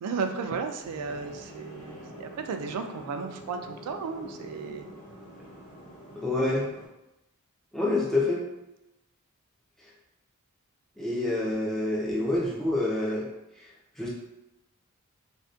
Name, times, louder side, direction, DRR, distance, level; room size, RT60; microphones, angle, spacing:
voice 1, 0.0-4.9, right 5 dB, 85° right, 11 dB, 0.3 m, -34 dB
sound 1, 0.8-6.9, equal, 90° left, 1.1 m, -46 dB
voice 2, 6.1-6.7 7.7-8.4 9.8-9.9 11.0-13.3 13.6-13.7 14.0-14.1, left 2 dB, ahead, -5 dB, 0.3 m, -27 dB
2.5 x 2.1 x 2.3 m, 0.92 s
head